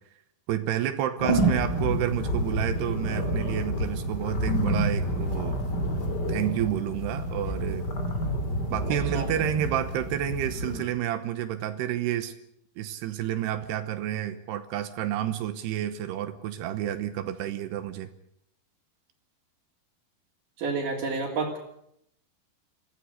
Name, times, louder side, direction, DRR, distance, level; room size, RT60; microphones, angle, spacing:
voice 1, 0.5-5.6 6.3-7.9 8.7-12.3 12.8-18.1, right 11 dB, 80° right, 10 dB, 3.1 m, -30 dB
sound 1, 1.2-10.8, right 1 dB, 30° left, 2.9 m, -28 dB
voice 2, 8.9-9.3 20.6-21.6, right 4 dB, 55° right, -2 dB, 4.5 m, -30 dB
24.0 x 16.5 x 8.2 m, 0.72 s
omnidirectional pair, 4.7 m